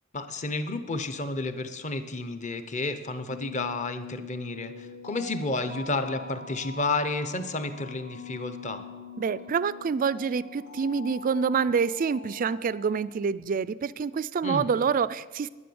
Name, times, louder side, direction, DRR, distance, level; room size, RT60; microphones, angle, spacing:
voice 1, 0.1-8.8 14.4-14.7, left 2 dB, 35° left, 10 dB, 0.8 m, -31 dB
sound 1, 3.3-12.9, left 5 dB, 90° left, 3.0 m, -44 dB
voice 2, 9.2-15.5, right 6 dB, 40° right, 18 dB, 0.3 m, -27 dB
11.0 x 9.9 x 7.0 m, 1.3 s
head